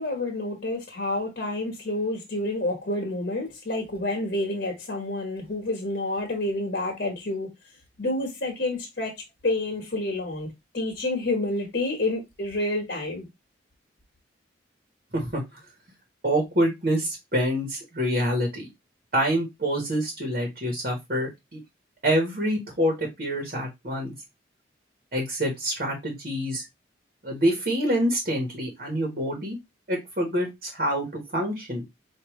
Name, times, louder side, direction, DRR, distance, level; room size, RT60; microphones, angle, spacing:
voice 1, 0.0-7.5 8.0-9.1 9.4-10.5 10.7-13.3, left 2 dB, 60° left, 1.2 m, -29 dB
voice 2, 16.2-18.7 19.1-21.6 22.0-24.1 25.1-26.6 27.2-29.6 29.9-31.8, equal, 50° right, 1.2 m, -26 dB
4.9 x 2.7 x 3.0 m
head